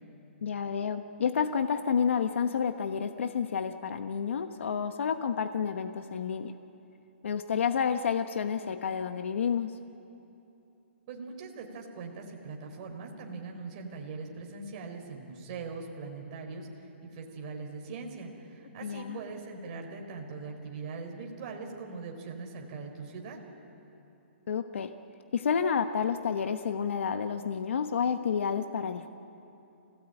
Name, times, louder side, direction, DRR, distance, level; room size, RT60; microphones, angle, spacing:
voice 1, 0.4-6.5 7.2-9.8 18.8-19.2 24.5-24.9 25.3-29.1, left 7 dB, 70° left, 8 dB, 1.1 m, -30 dB
voice 2, 11.1-23.4, right 4 dB, 35° right, 1 dB, 4.0 m, -41 dB
27.0 x 17.5 x 9.0 m, 2.8 s
hypercardioid pair, 160°, 7 cm